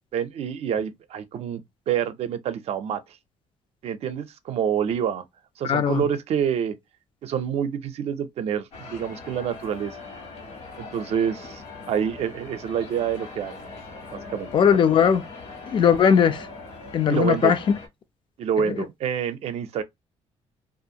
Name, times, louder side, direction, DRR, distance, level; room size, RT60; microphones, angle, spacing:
voice 1, 0.1-3.2 3.8-5.2 5.6-6.8 7.2-10.0 10.8-13.5 14.1-14.5 17.1-17.5 18.4-19.8, right 8 dB, 60° right, 0.5 m, -27 dB
voice 2, 5.6-6.0 14.5-15.3 15.7-16.5 16.9-17.8 18.6-18.8, left 7 dB, 45° left, 0.4 m, -19 dB
sound 1, 8.7-17.9, left 3 dB, 70° left, 1.2 m, -41 dB
2.5 x 2.4 x 2.7 m
cardioid pair, 130°, 12 cm